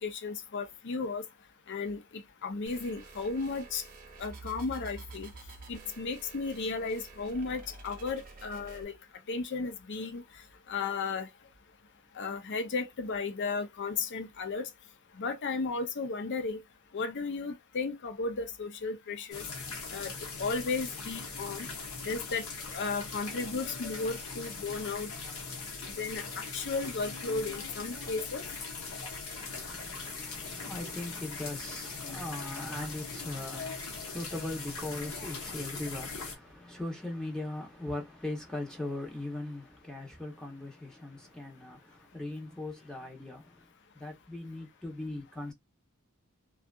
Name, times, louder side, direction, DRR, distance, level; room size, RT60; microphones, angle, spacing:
voice 1, 0.0-1.2 1.7-3.8 4.2-5.3 5.7-8.9 9.3-10.2 10.7-11.3 12.2-14.7 15.2-16.6 16.9-19.4 19.9-20.1 20.4-21.7 22.0-22.5 22.7-25.1 26.0-28.4, left 4 dB, 55° left, 0.6 m, -34 dB
sound 1, 2.7-8.8, right 3 dB, 40° right, 0.7 m, -48 dB
sound 2, 19.3-36.4, left 4 dB, 75° left, 0.9 m, -40 dB
voice 2, 29.4-43.7 43.9-45.5, left 2 dB, 5° left, 0.7 m, -40 dB
2.7 x 2.3 x 2.3 m
head